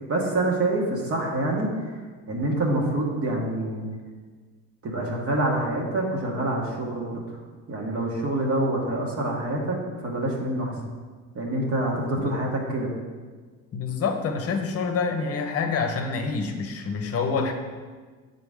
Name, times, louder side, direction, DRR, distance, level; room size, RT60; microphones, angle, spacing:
voice 1, 0.0-1.9 2.3-3.8 4.8-7.2 7.7-10.7 11.3-12.9, right 1 dB, 40° right, -2 dB, 1.3 m, -26 dB
voice 2, 13.7-17.5, left 5 dB, 40° left, 5 dB, 0.9 m, -27 dB
7.2 x 3.9 x 3.6 m, 1.5 s
supercardioid pair, 90°, 36 cm